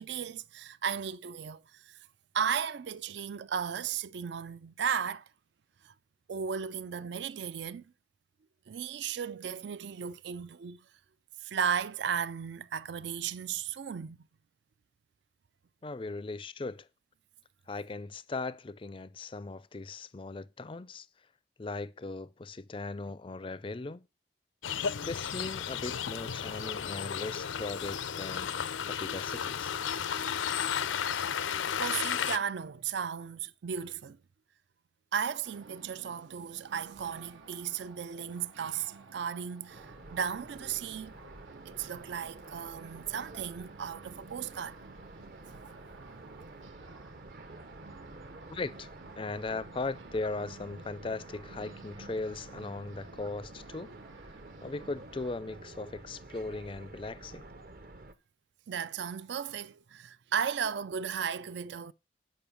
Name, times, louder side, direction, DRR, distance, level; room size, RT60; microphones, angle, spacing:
voice 1, 0.0-2.0 2.3-5.3 5.8-5.9 6.3-7.8 8.7-10.8 11.4-14.2 31.8-34.2 35.1-41.1 41.6-44.8 45.5-45.8 58.7-61.9, right 7 dB, 65° right, 0.4 m, -35 dB
voice 2, 15.8-16.9 17.7-21.1 21.6-24.0 25.0-29.7 48.5-48.9 49.2-53.9 54.6-57.5, left 3 dB, 25° left, 0.4 m, -38 dB
sound 1, 24.6-32.4, left 8 dB, 85° left, 0.6 m, -33 dB
sound 2, 35.4-55.3, right 4 dB, 90° right, 1.2 m, -54 dB
sound 3, 39.7-58.1, right 2 dB, 50° right, 0.9 m, -50 dB
8.5 x 5.5 x 7.0 m
head